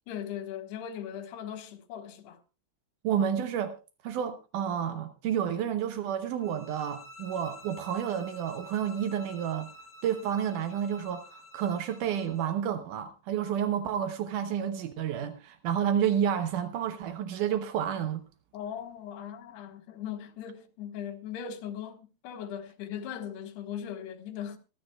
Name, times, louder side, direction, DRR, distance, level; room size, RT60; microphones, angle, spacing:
voice 1, 0.1-2.4 18.5-24.6, left 9 dB, 75° left, 3.6 m, -39 dB
voice 2, 3.0-3.8 4.0-9.7 10.0-18.2, right 9 dB, 80° right, 1.8 m, -30 dB
sound 1, 6.4-12.6, equal, 30° left, 2.4 m, -50 dB
25.5 x 12.0 x 2.3 m
omnidirectional pair, 4.9 m